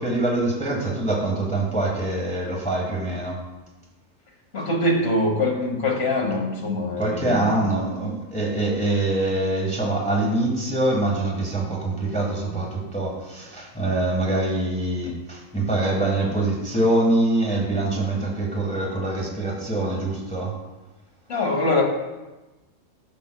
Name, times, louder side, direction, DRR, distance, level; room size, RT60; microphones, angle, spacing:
voice 1, 0.0-3.4 7.0-20.5, right 2 dB, 5° left, -2 dB, 1.2 m, -24 dB
voice 2, 4.5-7.6 21.3-21.8, left 1 dB, 55° left, 1 dB, 1.4 m, -23 dB
13.0 x 5.0 x 2.2 m, 1.1 s
omnidirectional pair, 1.3 m